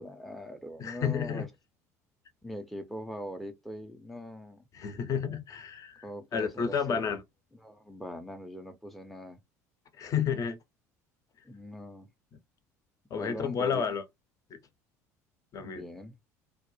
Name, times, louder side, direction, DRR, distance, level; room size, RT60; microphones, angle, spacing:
voice 1, 0.0-1.5 2.4-4.6 6.0-7.1 7.6-9.4 11.4-12.1 13.2-13.9 15.6-16.2, equal, ahead, 0.5 m, -41 dB
voice 2, 0.8-1.5 4.7-6.0 6.3-7.2 10.0-10.6 13.1-14.0 14.5-14.6 15.5-15.8, left 7 dB, 40° left, 0.7 m, -31 dB
2.4 x 2.0 x 2.9 m
hypercardioid pair, 70°, 9 cm